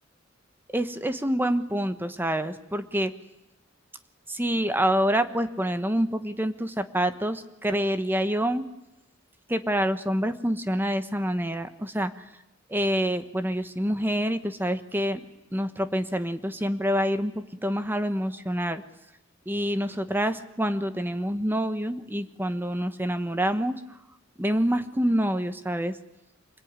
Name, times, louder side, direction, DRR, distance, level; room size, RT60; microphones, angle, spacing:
voice 1, 0.7-3.1 4.3-8.7 9.5-12.2 12.7-15.2 15.5-18.8 19.5-23.8 24.4-26.0, equal, 10° right, 10 dB, 1.3 m, -27 dB
25.0 x 21.0 x 9.7 m, 0.91 s
head